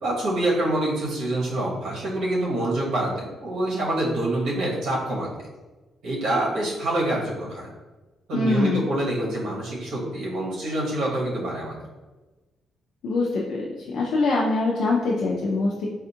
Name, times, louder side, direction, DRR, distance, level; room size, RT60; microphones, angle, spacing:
voice 1, 0.0-5.5 6.0-7.7 8.3-11.8, right 1 dB, 85° right, -3 dB, 0.9 m, -26 dB
voice 2, 8.3-8.9 13.0-13.6 13.9-15.9, left 3 dB, 70° left, -4 dB, 0.5 m, -23 dB
4.2 x 2.4 x 2.7 m, 1.2 s
cardioid pair, 165°, 0 cm